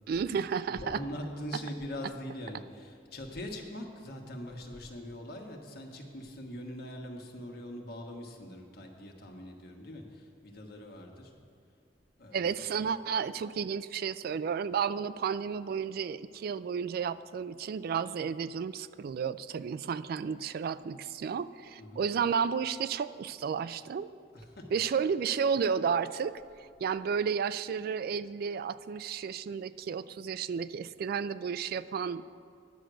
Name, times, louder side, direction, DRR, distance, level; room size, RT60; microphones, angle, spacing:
voice 1, 0.1-1.0 12.3-24.1 24.7-26.3 26.8-32.3, right 6 dB, 55° right, 15 dB, 0.3 m, -32 dB
voice 2, 0.7-11.3 12.2-12.9 21.8-22.0 24.3-24.7, left 1 dB, 60° left, 1 dB, 1.3 m, -42 dB
10.5 x 6.2 x 7.8 m, 2.2 s
head